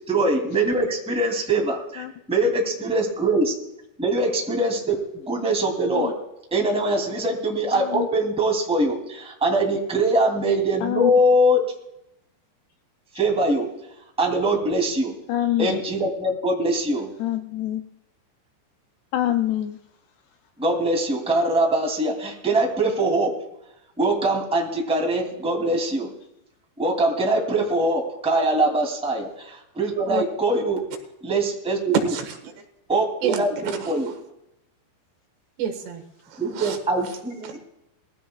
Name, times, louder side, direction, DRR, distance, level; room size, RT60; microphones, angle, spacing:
voice 1, 0.1-3.4 4.0-6.1 6.5-11.6 13.1-13.7 14.2-15.1 15.6-17.1 20.6-23.3 24.0-26.1 26.8-30.8 31.2-31.9 32.9-34.1 36.4-37.6, right 1 dB, 5° right, 0 dB, 1.2 m, -22 dB
voice 2, 7.7-8.1 10.8-11.1 15.3-15.8 17.2-17.8 19.1-19.8, left 12 dB, 80° left, 7 dB, 2.3 m, -25 dB
voice 3, 31.9-32.5 33.2-34.1 35.6-36.8 37.4-37.5, right 7 dB, 70° right, 6 dB, 3.5 m, -28 dB
20.5 x 15.5 x 2.3 m, 0.82 s
omnidirectional pair, 5.2 m